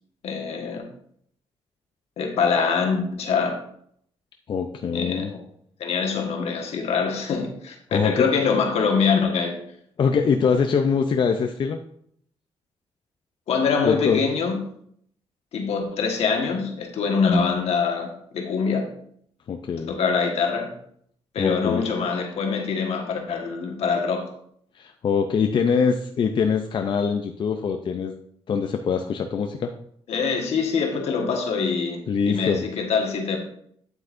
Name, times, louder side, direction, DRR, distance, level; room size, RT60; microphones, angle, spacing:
voice 1, 0.2-0.8 2.2-3.6 4.9-5.4 5.8-9.6 13.5-14.6 15.5-18.9 19.9-20.7 21.3-24.3 30.1-32.0 32.3-33.4, left 5 dB, 75° left, 2 dB, 1.4 m, -24 dB
voice 2, 4.5-5.3 7.9-8.3 10.0-11.8 13.9-14.2 19.5-19.9 21.4-21.9 24.8-28.2 28.5-29.7 32.1-32.7, left 6 dB, 50° left, 5 dB, 0.5 m, -23 dB
8.9 x 7.9 x 2.6 m, 0.67 s
cardioid pair, 125°, 11 cm